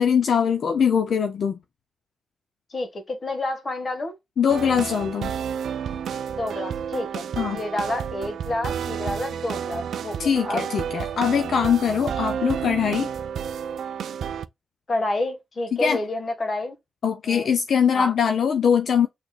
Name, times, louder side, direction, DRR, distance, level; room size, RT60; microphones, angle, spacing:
voice 1, 0.0-1.6 4.4-5.3 7.4-7.6 10.2-13.1 15.7-16.0 17.0-19.1, left 7 dB, 65° left, 0.6 m, -22 dB
voice 2, 2.7-4.2 6.4-10.7 14.9-16.8 17.2-17.5 17.9-18.1, left 2 dB, 35° left, 1.7 m, -29 dB
sound 1, 4.5-14.4, right 8 dB, 75° right, 0.5 m, -31 dB
6.4 x 3.2 x 2.4 m
wide cardioid pair, 135°, 0 cm